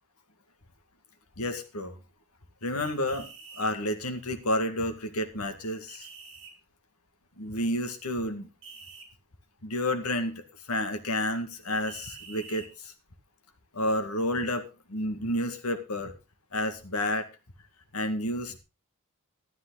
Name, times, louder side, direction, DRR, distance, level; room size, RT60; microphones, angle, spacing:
voice 1, 1.4-2.0 2.6-3.3 3.6-6.1 7.4-8.5 9.6-12.9 13.7-14.6 14.9-16.1 16.5-17.3 17.9-18.6, left 1 dB, 90° left, 7 dB, 2.0 m, -30 dB
sound 1, 2.8-3.7 5.9-6.5 8.6-9.1 11.9-12.7, right 5 dB, 60° right, 3.4 m, -46 dB
13.0 x 12.5 x 4.0 m, 0.29 s
head